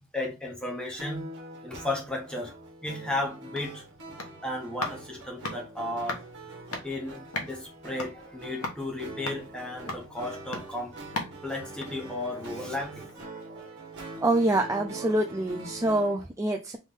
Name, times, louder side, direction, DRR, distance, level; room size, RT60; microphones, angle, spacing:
voice 1, 0.1-1.2 1.6-2.5 2.8-3.8 4.4-6.2 6.8-10.9 11.4-13.0 13.3-13.7, left 1 dB, 5° left, 1.3 m, -34 dB
sound 1, 1.0-16.2, right 2 dB, 55° right, 1.5 m, -44 dB
sound 2, 3.5-12.7 13.1-13.2, left 2 dB, 90° left, 1.1 m, -40 dB
voice 2, 14.2-16.8, right 1 dB, 15° right, 0.3 m, -26 dB
3.5 x 3.5 x 3.7 m
head